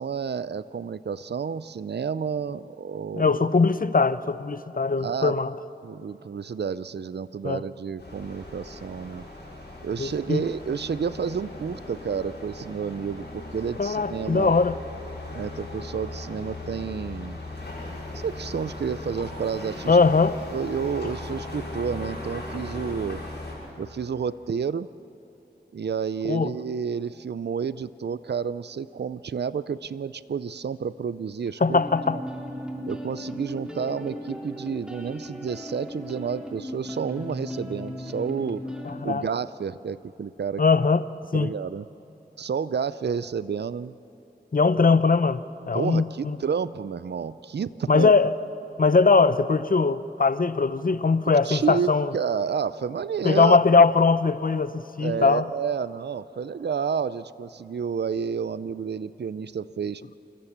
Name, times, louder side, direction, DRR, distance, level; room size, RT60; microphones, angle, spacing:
voice 1, 0.0-3.4 5.0-5.4 5.8-9.2 9.8-14.6 15.3-17.4 18.2-20.0 20.5-23.2 23.8-24.9 25.7-31.8 32.9-38.6 39.0-40.6 41.3-41.8 42.4-43.9 45.7-48.1 51.3-53.6 55.0-60.0, right 6 dB, 75° right, 16 dB, 0.5 m, -30 dB
voice 2, 3.1-5.5 7.4-7.6 10.0-10.4 13.8-14.8 19.9-20.4 26.3-26.5 31.6-32.2 38.9-39.3 40.6-41.0 41.3-41.5 44.5-46.1 47.9-48.3 48.8-52.1 53.2-55.5, left 4 dB, 55° left, 14 dB, 0.7 m, -21 dB
sound 1, 8.0-23.5, left 2 dB, 85° left, 6.8 m, -38 dB
sound 2, 31.7-38.9, equal, 5° right, 3.3 m, -37 dB
28.0 x 14.5 x 7.2 m, 2.9 s
wide cardioid pair, 40°, 18 cm